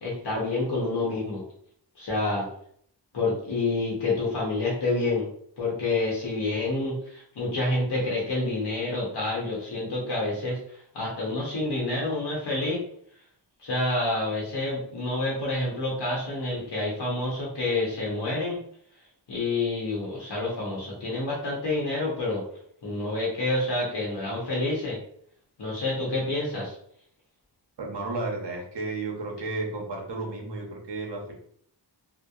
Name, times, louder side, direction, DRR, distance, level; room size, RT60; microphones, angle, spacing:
voice 1, 0.0-1.4 2.0-2.5 3.1-5.2 5.6-10.6 10.9-12.8 13.6-18.6 19.3-22.4 22.8-25.0 25.6-26.7, left 2 dB, 70° left, -4 dB, 0.8 m, -28 dB
voice 2, 27.8-31.3, right 3 dB, 65° right, -1 dB, 0.8 m, -33 dB
2.8 x 2.0 x 2.3 m, 0.65 s
wide cardioid pair, 70°, 43 cm